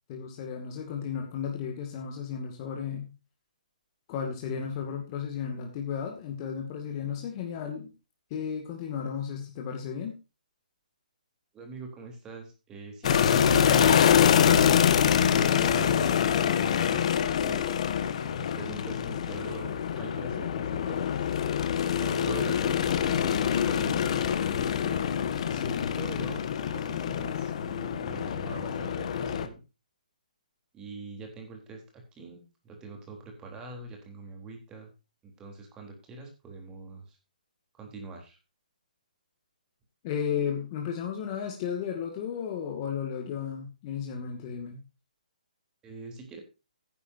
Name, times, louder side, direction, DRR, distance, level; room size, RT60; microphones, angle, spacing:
voice 1, 0.1-3.1 4.1-7.9 8.3-10.2 25.5-26.3 40.0-44.8, left 7 dB, 30° left, 2 dB, 2.2 m, -34 dB
voice 2, 11.5-14.1 14.7-17.7 18.4-21.3 22.0-25.0 26.0-29.6 30.7-34.9 35.4-37.2 37.7-38.4 45.8-46.4, right 3 dB, 15° right, 3 dB, 3.6 m, -44 dB
sound 1, 13.0-29.5, left 8 dB, 45° left, 1.5 m, -25 dB
14.0 x 10.5 x 2.7 m, 0.29 s
hypercardioid pair, 155°, 5 cm